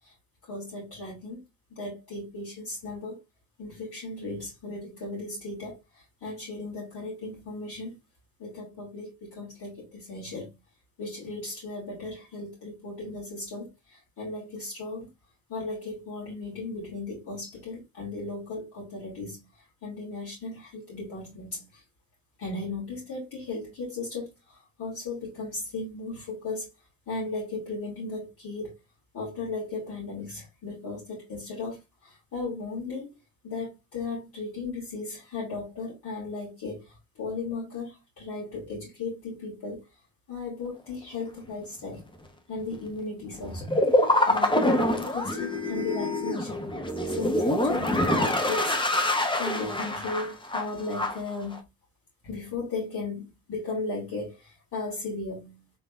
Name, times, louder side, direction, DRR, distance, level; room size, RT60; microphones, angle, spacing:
voice 1, 0.5-1.4 1.8-3.2 3.6-5.8 6.2-8.0 8.4-10.6 11.0-13.7 14.2-15.1 15.5-19.4 19.8-21.7 22.4-24.3 24.8-26.7 27.1-28.7 29.1-31.8 32.0-33.1 33.4-36.8 37.2-39.8 40.3-42.1 42.5-43.7 44.3-46.6 47.1-48.8 49.3-51.6 52.2-54.3 54.7-55.6, left 3 dB, 55° left, 3.0 m, -36 dB
sound 1, 42.0-42.1 42.9-43.0 43.3-51.2 51.5-51.6, left 1 dB, 10° left, 1.0 m, -25 dB
4.4 x 3.7 x 2.5 m
hypercardioid pair, 45°, 44 cm